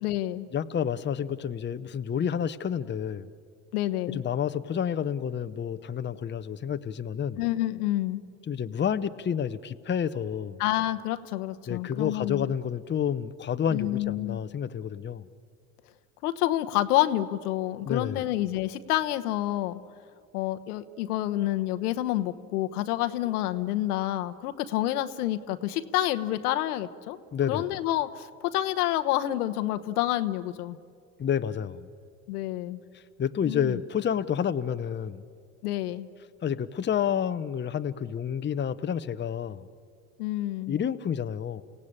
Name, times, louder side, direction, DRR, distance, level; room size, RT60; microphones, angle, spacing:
voice 1, 0.0-0.5 3.7-4.2 7.4-8.2 10.6-12.5 13.7-14.4 16.2-19.8 20.3-27.2 27.5-30.8 32.3-32.8 33.5-33.8 35.6-36.1 40.2-40.8, left 14 dB, 80° left, 9 dB, 1.1 m, -28 dB
voice 2, 0.5-3.3 4.1-7.4 8.5-10.6 11.7-15.2 17.8-18.2 27.3-27.7 31.2-31.9 32.9-35.2 36.4-39.7 40.7-41.6, left 8 dB, 25° left, 11 dB, 0.8 m, -29 dB
29.5 x 17.0 x 8.8 m, 2.3 s
hypercardioid pair, 75°, 44 cm